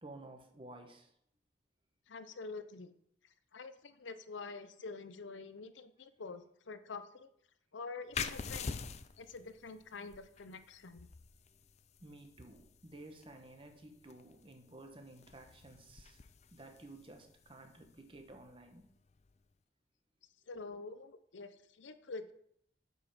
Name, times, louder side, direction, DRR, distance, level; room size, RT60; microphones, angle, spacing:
voice 1, 0.0-1.1 12.0-16.2 16.5-18.8, right 2 dB, 30° right, 4 dB, 1.2 m, -53 dB
voice 2, 2.1-2.9 3.5-7.3 7.7-8.7 9.2-11.1 20.5-22.3, left 4 dB, 80° left, 12 dB, 0.6 m, -47 dB
sound 1, 8.1-19.4, left 6 dB, 35° left, 0.4 m, -47 dB
8.0 x 5.5 x 6.0 m, 0.72 s
head